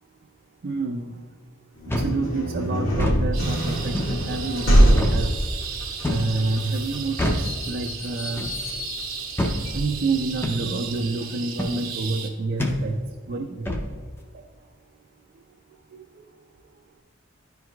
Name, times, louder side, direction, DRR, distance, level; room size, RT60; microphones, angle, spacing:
voice 1, 0.6-1.2 2.0-5.5 6.1-8.5 9.7-13.0 13.3-13.6 14.3-14.4 15.9-16.0, right 3 dB, 50° right, 2 dB, 0.4 m, -28 dB
sound 1, 1.8-10.4, equal, 70° left, 1.8 m, -24 dB
sound 2, 1.9-2.2 2.9-3.2 3.9-4.2 5.0-5.2 6.0-6.3 7.2-7.5 8.4-8.6 9.4-9.6 10.4-10.6 11.6-11.8 12.6-12.8 13.7-13.9, left 1 dB, 10° left, 0.5 m, -25 dB
sound 3, 3.3-12.3, right 7 dB, 70° right, 0.9 m, -36 dB
10.5 x 4.6 x 2.3 m, 1.6 s
head